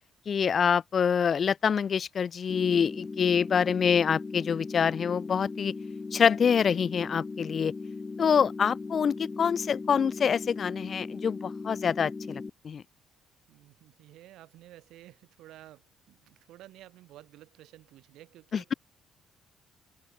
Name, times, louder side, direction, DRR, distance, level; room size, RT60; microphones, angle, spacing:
voice 1, 0.3-5.7 6.1-7.7 8.2-12.8 18.5-18.7, left 7 dB, 50° left, 0.3 m, -26 dB
sound 1, 2.5-12.5, left 4 dB, 30° left, 1.8 m, -38 dB
voice 2, 13.5-18.7, right 15 dB, 75° right, 2.3 m, -52 dB
open air
hypercardioid pair, 55°, 0 cm